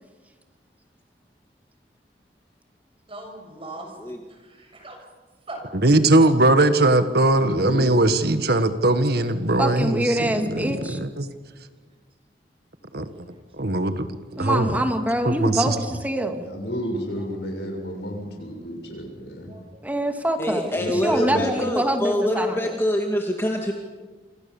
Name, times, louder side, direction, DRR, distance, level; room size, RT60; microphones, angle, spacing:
voice 1, 3.1-3.9 4.4-5.0 5.5-5.7 6.2-6.3 10.6-10.8 12.9-13.2 19.5-19.8, right 2 dB, 30° right, 3 dB, 6.5 m, -40 dB
voice 2, 5.8-11.3 12.9-13.1 13.6-14.1 14.4-14.8 15.3-15.8, right 2 dB, 60° right, 10 dB, 1.7 m, -20 dB
voice 3, 7.3-7.9 16.4-19.5 20.7-21.5, equal, 65° left, 2 dB, 7.2 m, -32 dB
voice 4, 9.6-11.0 14.4-16.5 19.8-22.7, equal, 10° right, 5 dB, 2.4 m, -25 dB
voice 5, 20.4-23.7, equal, 15° left, 2 dB, 2.2 m, -25 dB
28.5 x 26.5 x 7.3 m, 1.3 s
head